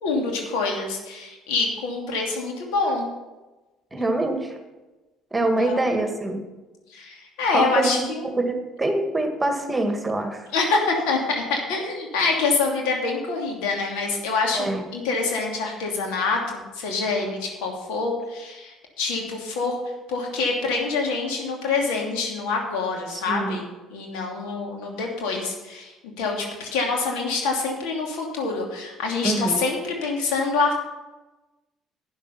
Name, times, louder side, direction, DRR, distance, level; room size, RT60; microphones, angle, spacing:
voice 1, 0.0-3.1 5.6-5.8 6.9-8.3 10.5-19.8 20.1-25.9 26.2-30.7, left 4 dB, 65° left, 1 dB, 2.8 m, -26 dB
voice 2, 3.9-4.6 5.3-6.4 7.5-8.1 8.3-10.5 14.5-14.8 23.1-23.6 29.2-29.6, right 2 dB, 15° right, 5 dB, 2.0 m, -25 dB
11.5 x 9.5 x 5.9 m, 1.1 s
figure-of-eight pair, 55°, 0 cm